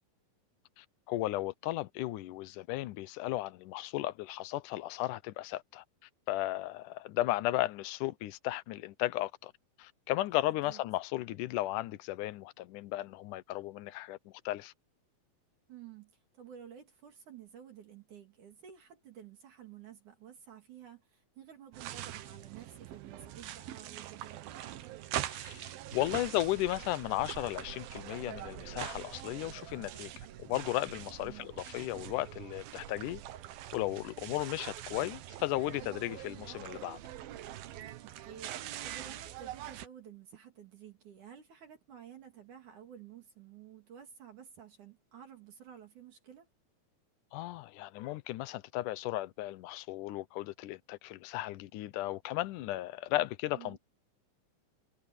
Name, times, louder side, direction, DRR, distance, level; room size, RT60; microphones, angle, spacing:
voice 1, 0.8-5.8 6.3-9.5 9.8-14.7 25.3-30.1 30.4-33.2 33.7-37.0 47.3-53.8, left 16 dB, 75° left, 2.1 m, -35 dB
voice 2, 10.5-10.8 15.7-24.6 31.2-31.5 38.0-46.5 53.5-53.8, right 9 dB, 60° right, 3.7 m, -52 dB
sound 1, 21.7-39.9, right 12 dB, 85° right, 3.0 m, -43 dB
omnidirectional pair, 4.2 m